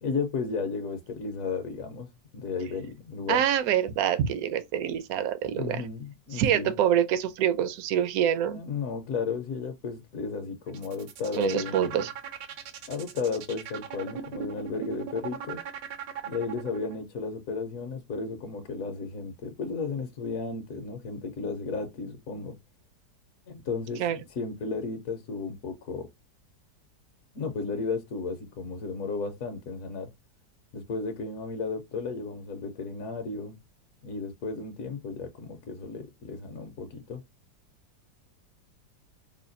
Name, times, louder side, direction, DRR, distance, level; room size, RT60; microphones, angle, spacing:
voice 1, 0.0-3.4 5.5-6.8 8.5-12.1 12.9-15.6 16.2-22.5 23.5-26.1 27.3-30.1 30.7-33.6 34.0-37.2, left 4 dB, 60° left, 1.0 m, -34 dB
voice 2, 3.3-5.8 6.3-8.6 11.4-12.1 24.0-24.2, right 10 dB, 70° right, 0.9 m, -26 dB
sound 1, 10.7-16.9, right 8 dB, 85° right, 1.4 m, -39 dB
5.6 x 2.2 x 2.6 m
omnidirectional pair, 1.9 m